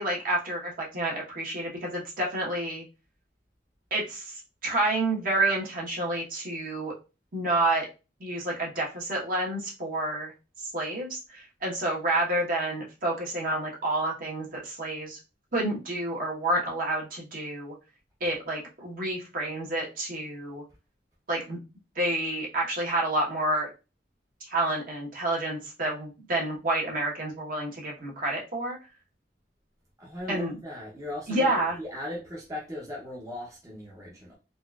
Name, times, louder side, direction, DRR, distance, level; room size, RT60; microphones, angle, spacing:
voice 1, 0.0-2.8 3.9-6.9 7.3-7.9 8.2-10.3 10.6-15.2 15.5-17.7 18.2-20.6 21.3-21.6 21.9-23.7 24.5-28.8 30.3-30.6 31.3-31.8, right 1 dB, 50° right, 1.2 m, -29 dB
voice 2, 30.0-31.4 31.8-34.4, left 1 dB, 20° right, 0.7 m, -38 dB
3.9 x 2.4 x 2.4 m
head